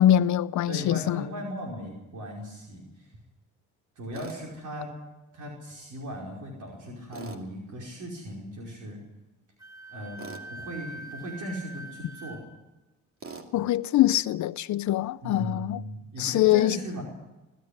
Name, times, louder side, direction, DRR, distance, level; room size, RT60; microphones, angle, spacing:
voice 1, 0.0-1.2 13.5-15.8 16.2-16.8, left 13 dB, 70° left, 0.6 m, -23 dB
voice 2, 0.7-3.1 4.0-4.9 5.3-9.0 9.9-10.2 10.5-12.4 15.2-17.0, equal, 75° right, 5.2 m, -37 dB
Tools, 4.1-4.4 7.1-7.4 10.2-10.5 13.2-13.5, right 4 dB, 45° right, 2.8 m, -41 dB
Wind instrument woodwind instrument, 9.6-12.4, right 2 dB, 10° right, 6.0 m, -43 dB
21.0 x 13.0 x 10.0 m
cardioid pair, 90°, 30 cm